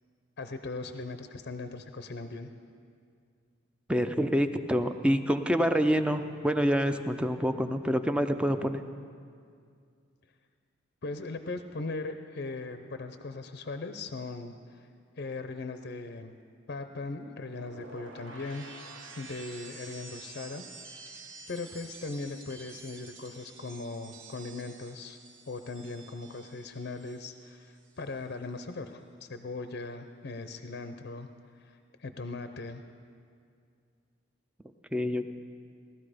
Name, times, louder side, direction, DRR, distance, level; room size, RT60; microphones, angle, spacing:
voice 1, 0.4-2.5 11.0-14.9 15.2-16.3 16.7-21.0 21.5-25.2 25.5-31.3 31.5-32.8, left 3 dB, 50° left, 8 dB, 0.6 m, -39 dB
voice 2, 3.9-8.8 34.9-35.3, equal, 5° right, 9 dB, 0.5 m, -27 dB
sound 1, 17.4-27.5 27.8-28.2, right 3 dB, 65° right, 1.2 m, -49 dB
18.0 x 13.0 x 5.0 m, 2.3 s
head